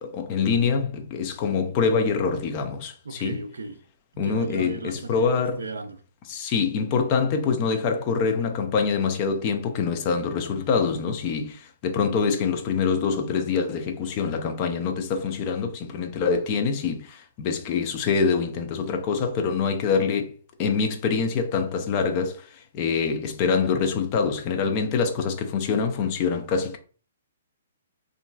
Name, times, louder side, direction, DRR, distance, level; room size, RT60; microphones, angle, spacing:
voice 1, 0.0-3.4 4.2-5.6 6.3-20.3 20.6-26.8, left 5 dB, 35° left, 0.5 m, -25 dB
voice 2, 3.1-3.8 4.2-6.0, right 3 dB, 70° right, 0.4 m, -36 dB
3.7 x 2.5 x 2.2 m
figure-of-eight pair, 120°, 0 cm